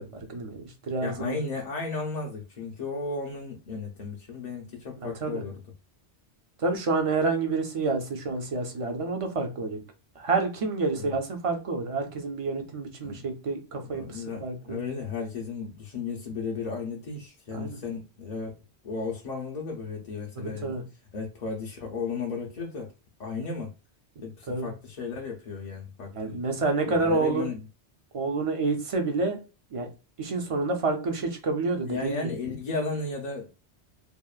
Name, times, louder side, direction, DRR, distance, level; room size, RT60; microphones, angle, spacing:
voice 1, 0.0-1.4 5.0-5.4 6.6-9.8 10.2-14.8 17.5-17.8 20.4-20.8 24.5-24.7 26.1-27.5 28.1-29.4 29.7-29.9 30.2-32.3, right 3 dB, 45° right, 0.4 m, -28 dB
voice 2, 1.0-5.6 11.0-11.1 13.0-13.3 13.9-18.6 18.8-20.8 21.1-22.9 23.2-23.7 24.2-26.4 26.9-27.6 31.8-33.5, left 4 dB, 55° left, 0.5 m, -34 dB
2.8 x 2.0 x 2.3 m
omnidirectional pair, 1.1 m